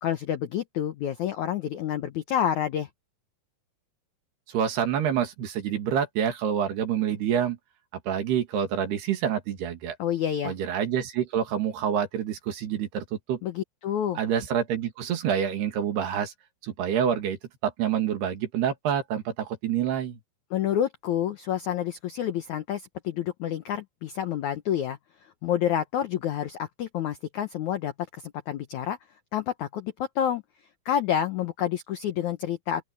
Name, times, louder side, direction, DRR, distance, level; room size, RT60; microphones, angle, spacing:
voice 1, 0.0-2.9 10.0-10.5 13.4-14.2 20.5-25.0 25.4-29.0 29.3-30.4 30.8-32.8, left 10 dB, 90° left, 1.7 m, -28 dB
voice 2, 4.5-7.6 8.1-10.0 10.4-13.4 14.2-16.3 16.6-20.2, right 9 dB, 70° right, 4.1 m, -27 dB
open air
omnidirectional pair, 4.9 m